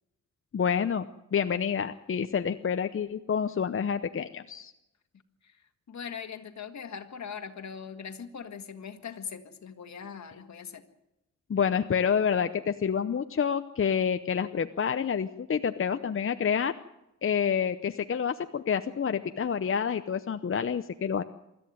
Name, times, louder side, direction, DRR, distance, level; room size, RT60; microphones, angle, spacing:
voice 1, 0.5-4.7 11.5-16.7 17.2-21.2, left 7 dB, 45° left, 9 dB, 0.8 m, -28 dB
voice 2, 5.9-10.8, left 7 dB, 70° left, 7 dB, 1.9 m, -41 dB
24.5 x 13.5 x 9.4 m, 0.92 s
wide cardioid pair, 110°, 29 cm